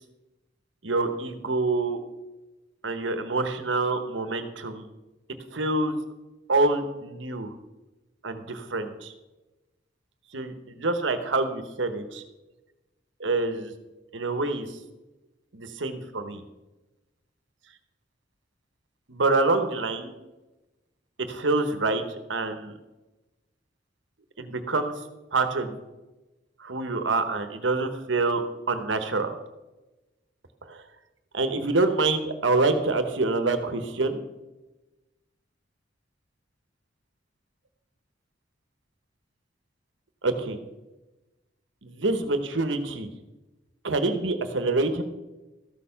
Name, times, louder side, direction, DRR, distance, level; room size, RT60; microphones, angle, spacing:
voice 1, 0.8-2.0 2.8-4.9 5.5-5.9 6.5-7.5 8.2-9.1 10.3-12.2 13.2-13.7 14.1-14.8 15.5-16.4 19.1-20.1 21.3-22.8 24.4-25.0 25.3-25.8 26.6-28.4 28.7-29.3 30.6-30.8 31.3-34.2 40.2-40.6 41.8-43.1 43.8-45.0, right 3 dB, 80° right, 8 dB, 1.1 m, -26 dB
13.5 x 6.7 x 5.7 m, 1.1 s
head